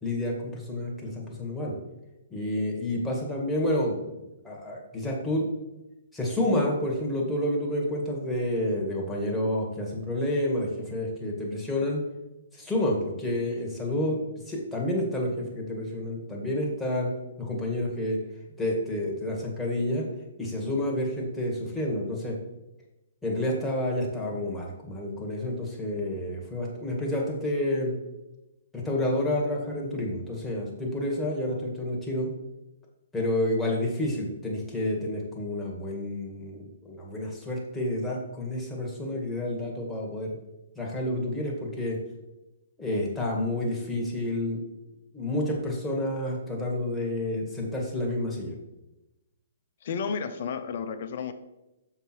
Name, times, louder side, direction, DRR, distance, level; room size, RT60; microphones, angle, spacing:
voice 1, 0.0-1.8 2.3-5.5 6.1-12.0 12.5-17.1 17.4-18.2 18.6-20.1 20.4-22.4 23.2-27.9 28.7-32.3 33.1-40.4 40.8-42.0 42.8-44.6 45.1-48.5, left 1 dB, 5° left, -3 dB, 1.9 m, -29 dB
voice 2, 49.8-51.3, left 6 dB, 55° left, 8 dB, 0.7 m, -32 dB
6.7 x 5.8 x 4.6 m, 0.98 s
hypercardioid pair, 135°, 0 cm